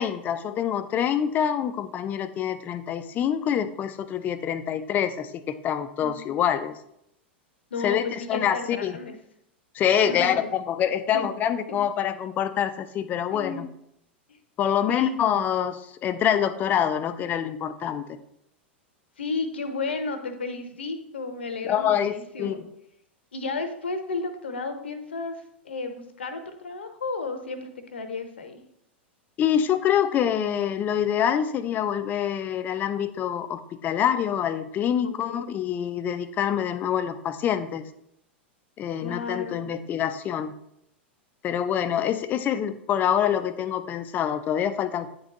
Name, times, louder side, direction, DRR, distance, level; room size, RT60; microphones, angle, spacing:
voice 1, 0.0-6.7 7.8-8.9 9.7-13.7 14.6-18.2 21.6-22.7 29.4-37.8 38.8-40.5 41.4-45.1, left 9 dB, 30° left, 12 dB, 0.4 m, -26 dB
voice 2, 6.0-6.4 7.7-9.1 10.0-10.5 11.1-11.3 11.7-11.8 13.3-13.6 14.3-14.4 14.9-15.2 19.2-22.6 23.3-25.4 25.6-28.6 35.0-35.5 39.0-39.7, left 3 dB, 70° left, 8 dB, 0.8 m, -33 dB
9.4 x 4.0 x 2.9 m, 0.76 s
figure-of-eight pair, 90°, 6 cm